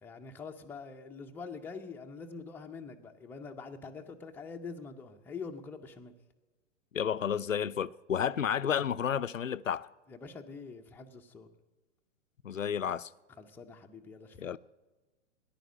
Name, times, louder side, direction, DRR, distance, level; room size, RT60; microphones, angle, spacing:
voice 1, 0.0-6.1 10.1-11.5 13.4-14.6, left 4 dB, 5° left, 0.6 m, -45 dB
voice 2, 6.9-9.9 12.4-13.1 14.4-14.6, left 8 dB, 90° left, 0.5 m, -31 dB
14.0 x 10.5 x 6.3 m
figure-of-eight pair, 110°, 38 cm